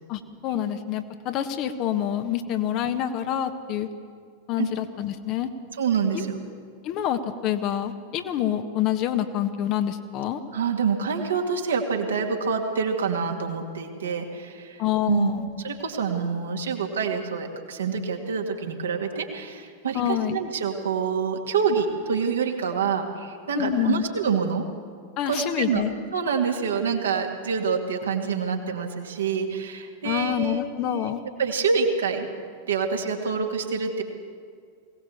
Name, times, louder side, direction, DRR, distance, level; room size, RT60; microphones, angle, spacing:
voice 1, 0.1-3.9 4.5-5.5 6.1-6.3 6.8-10.4 14.8-15.4 19.9-20.4 23.5-24.0 25.2-25.9 30.0-31.2, left 10 dB, 40° left, 8 dB, 1.3 m, -27 dB
voice 2, 5.8-6.5 10.5-15.3 15.6-24.6 25.3-25.8 26.1-31.1 31.4-32.3 32.7-34.0, right 6 dB, 65° right, 2 dB, 2.2 m, -26 dB
21.5 x 18.0 x 7.2 m, 2.1 s
figure-of-eight pair, 90°, 0 cm